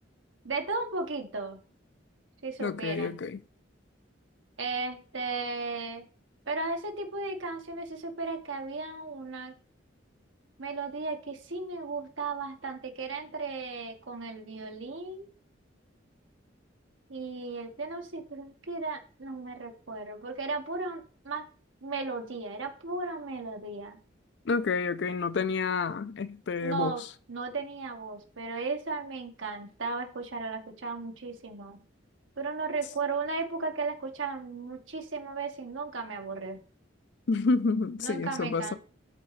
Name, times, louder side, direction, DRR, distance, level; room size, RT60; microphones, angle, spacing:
voice 1, 0.4-1.6 2.4-3.2 4.6-6.0 6.5-9.5 10.6-15.3 17.1-21.4 21.8-24.0 26.6-27.0 27.3-31.8 32.4-36.6 38.0-38.8, right 3 dB, 85° right, 1.3 m, -35 dB
voice 2, 2.6-3.4 24.5-26.9 37.3-38.8, left 4 dB, 60° left, 0.5 m, -29 dB
12.0 x 4.2 x 3.2 m
head